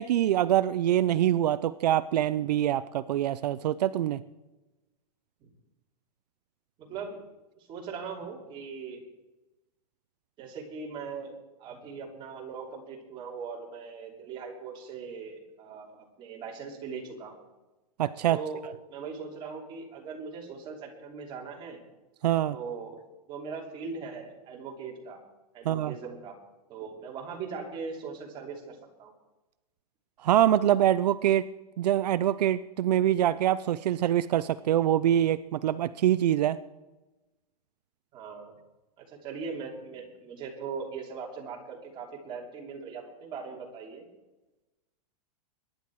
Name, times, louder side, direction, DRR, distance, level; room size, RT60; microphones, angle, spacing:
voice 1, 0.0-4.2 18.0-18.4 22.2-22.6 25.6-25.9 30.2-31.5 31.8-36.6, right 11 dB, 80° right, 14 dB, 0.6 m, -24 dB
voice 2, 6.8-7.2 7.7-9.0 10.4-17.4 18.3-21.8 22.5-23.0 23.3-25.2 25.5-26.4 26.7-29.1 38.1-38.5 39.0-44.0, right 5 dB, 25° right, 0 dB, 3.0 m, -40 dB
22.0 x 10.5 x 4.7 m, 1.1 s
supercardioid pair, 165°, 20 cm